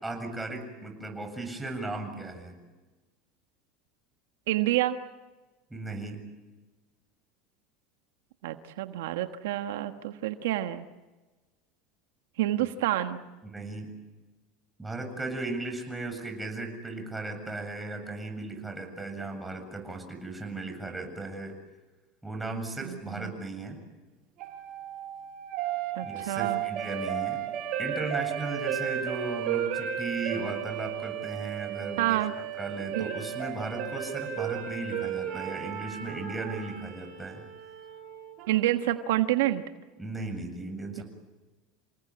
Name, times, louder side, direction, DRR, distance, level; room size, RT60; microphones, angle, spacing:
voice 1, 0.0-2.6 5.7-6.2 12.6-12.7 13.4-13.9 14.8-21.5 22.2-23.8 26.0-27.4 27.8-32.2 32.5-37.5 40.0-41.0, right 2 dB, 10° right, 4 dB, 7.6 m, -36 dB
voice 2, 4.5-5.0 8.4-10.9 12.4-13.2 22.8-23.3 25.9-26.6 32.0-32.3 32.9-33.1 38.5-39.6, right 14 dB, 85° right, 8 dB, 1.3 m, -28 dB
sound 1, 24.4-38.5, right 9 dB, 55° right, 5.2 m, -34 dB
28.5 x 19.5 x 8.8 m, 1.2 s
supercardioid pair, 115°, 0 cm